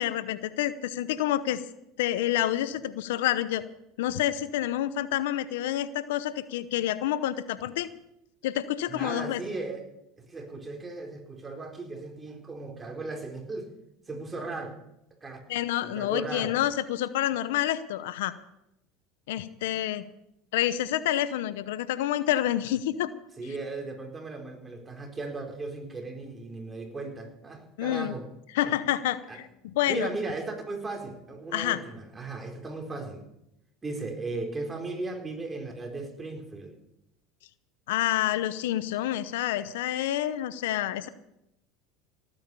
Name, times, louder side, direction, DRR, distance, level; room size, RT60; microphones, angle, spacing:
voice 1, 0.0-1.6 2.0-3.6 4.0-7.9 8.4-9.4 15.5-18.3 19.3-20.0 20.5-23.1 27.8-28.2 28.5-30.1 31.5-31.8 37.9-41.1, left 13 dB, 80° left, 14 dB, 0.8 m, -28 dB
voice 2, 8.9-9.9 10.3-13.7 14.1-14.8 15.2-15.4 15.8-16.5 23.4-28.3 28.6-28.7 29.3-29.4 29.9-33.2 33.8-36.8, right 3 dB, 20° right, 3 dB, 4.2 m, -36 dB
18.0 x 9.4 x 6.9 m, 0.83 s
supercardioid pair, 95°, 0 cm